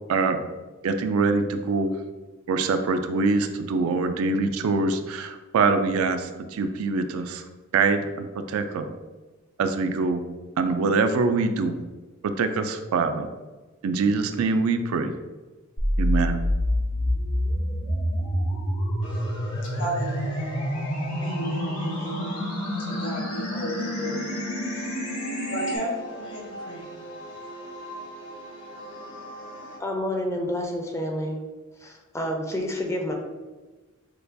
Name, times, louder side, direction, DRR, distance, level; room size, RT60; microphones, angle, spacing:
voice 1, 0.1-0.4 0.8-1.9 2.5-7.4 7.7-8.8 9.6-10.2 10.6-11.8 12.2-13.3 13.8-15.1 16.0-16.4, right 4 dB, 75° right, 0.3 m, -24 dB
sound 1, 15.8-25.8, left 1 dB, 90° left, 1.4 m, -27 dB
voice 2, 19.0-29.8, right 1 dB, 60° left, 1.2 m, -35 dB
voice 3, 29.8-31.4 31.8-33.1, left 1 dB, 15° left, 0.5 m, -29 dB
6.5 x 2.3 x 2.6 m
head